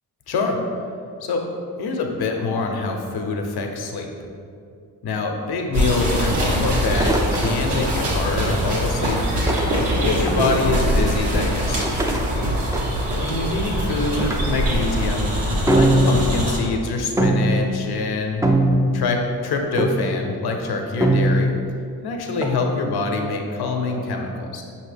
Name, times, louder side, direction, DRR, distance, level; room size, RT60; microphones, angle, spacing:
voice 1, 0.3-0.6 1.2-1.5 1.8-4.1 5.0-9.3 10.0-11.9 13.2-15.3 15.7-18.4 18.9-21.5 22.0-24.6, left 3 dB, 65° left, 3 dB, 0.7 m, -25 dB
sound 1, 5.7-16.6, equal, 75° right, 1.3 m, -23 dB
sound 2, 7.0-8.1 9.5-10.5 11.8-13.5 14.2-14.4 14.8-15.0 15.7-16.4 17.2-17.7 18.4-19.1 19.8-20.2 21.0-21.6 22.4-22.6, right 1 dB, 10° right, 0.4 m, -21 dB
5.3 x 2.8 x 3.3 m, 2.5 s
supercardioid pair, 55°, 41 cm